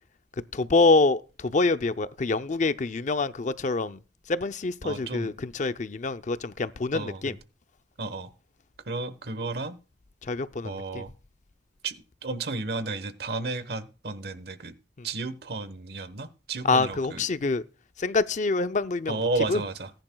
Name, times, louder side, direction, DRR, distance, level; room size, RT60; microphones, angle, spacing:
voice 1, 0.5-4.0 4.3-7.4 10.2-11.0 15.0-15.1 16.6-17.6 18.0-19.6, left 3 dB, 45° left, 0.5 m, -26 dB
voice 2, 4.8-5.3 6.9-7.4 8.0-8.3 8.9-9.8 10.6-11.1 11.8-11.9 12.2-14.7 15.0-17.2 19.1-19.9, right 3 dB, 65° right, 1.1 m, -32 dB
19.5 x 10.5 x 2.3 m
head